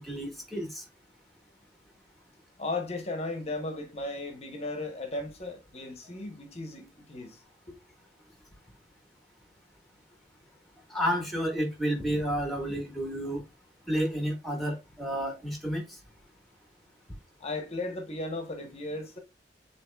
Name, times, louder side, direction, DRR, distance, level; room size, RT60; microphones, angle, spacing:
voice 1, 0.0-0.8 10.9-13.4 13.9-16.0, equal, ahead, 1.5 m, -31 dB
voice 2, 2.6-7.4 7.7-7.8 17.4-19.2, left 2 dB, 35° left, 1.0 m, -36 dB
7.5 x 3.1 x 2.3 m
head